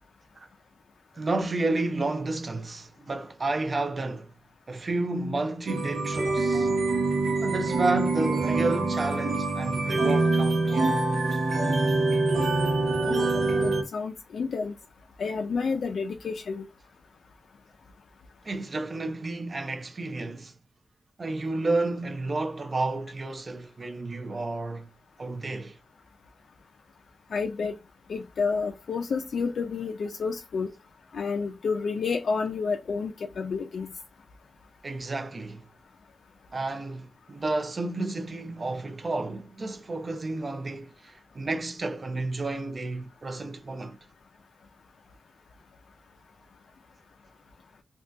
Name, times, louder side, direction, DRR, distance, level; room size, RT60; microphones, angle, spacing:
voice 1, 1.1-4.3 4.7-6.7 7.4-11.0 18.4-20.6 21.2-24.9 25.2-25.8 34.8-35.7 36.5-44.0, right 2 dB, 35° right, 0.4 m, -31 dB
sound 1, 5.7-13.8, right 3 dB, 90° right, 0.7 m, -25 dB
voice 2, 13.6-14.7 15.2-16.7 27.3-27.8 28.1-30.7 31.1-33.9, left 5 dB, 85° left, 0.3 m, -30 dB
2.6 x 2.2 x 3.3 m
wide cardioid pair, 150°, 0 cm